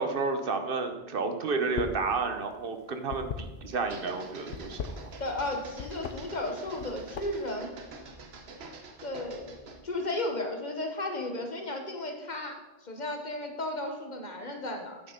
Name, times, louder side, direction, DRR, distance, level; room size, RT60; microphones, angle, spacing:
voice 1, 0.0-4.9, right 4 dB, 65° right, 7 dB, 1.0 m, -31 dB
sound 1, 1.6-2.1 2.3-3.9 4.4-5.5 5.8-6.2 6.7-7.5, left 7 dB, 90° left, 1.0 m, -38 dB
sound 2, 3.7-9.9, right 3 dB, 80° right, 1.2 m, -46 dB
voice 2, 5.2-7.8 9.0-15.0, left 2 dB, 45° left, 4 dB, 1.3 m, -34 dB
8.8 x 6.5 x 5.1 m, 1.1 s
omnidirectional pair, 1.0 m